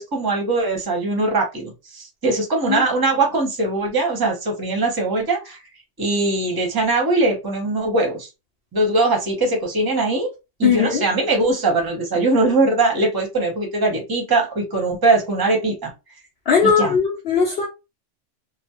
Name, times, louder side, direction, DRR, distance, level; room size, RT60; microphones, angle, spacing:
voice 1, 0.0-5.6 6.0-8.3 8.7-10.3 10.6-15.9 16.6-17.0, right 2 dB, 25° right, 0.6 m, -21 dB
voice 2, 10.6-11.0 16.5-17.7, left 6 dB, 65° left, 0.7 m, -18 dB
2.3 x 2.0 x 2.8 m
omnidirectional pair, 1.3 m